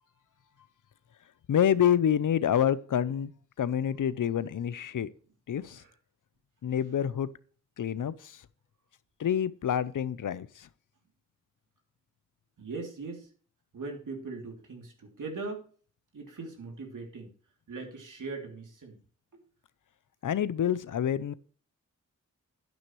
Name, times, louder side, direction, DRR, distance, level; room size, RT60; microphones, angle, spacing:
voice 1, 1.5-3.3 3.6-5.1 5.5-5.8 6.6-7.3 7.8-8.4 9.2-10.7 20.2-21.3, left 9 dB, 80° left, 0.6 m, -27 dB
voice 2, 12.6-13.3 13.7-15.7 16.1-17.3 17.7-19.0, right 3 dB, 80° right, 3.0 m, -40 dB
10.5 x 9.8 x 3.2 m
cardioid pair, 65°, 31 cm